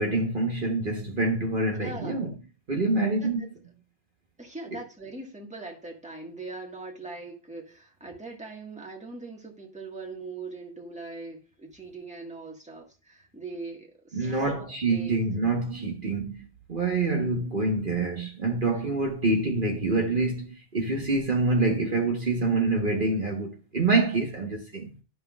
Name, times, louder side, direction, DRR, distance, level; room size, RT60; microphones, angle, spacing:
voice 1, 0.0-2.3 2.7-3.5 14.1-16.4 16.7-24.9, right 3 dB, 45° right, 1.3 m, -26 dB
voice 2, 1.8-2.3 3.2-3.3 4.4-15.2 18.7-18.8, right 3 dB, 5° right, 1.6 m, -41 dB
12.5 x 5.6 x 2.4 m
omnidirectional pair, 1.2 m